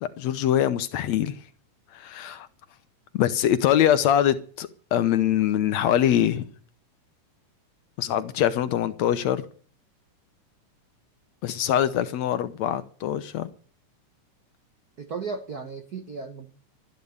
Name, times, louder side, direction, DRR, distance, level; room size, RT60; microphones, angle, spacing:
voice 1, 0.0-1.4 1.9-2.5 3.1-6.5 8.0-9.4 11.4-13.5, left 11 dB, 70° left, 2.0 m, -23 dB
voice 2, 15.0-16.5, right 5 dB, 90° right, 0.8 m, -35 dB
13.0 x 11.0 x 6.7 m
omnidirectional pair, 3.6 m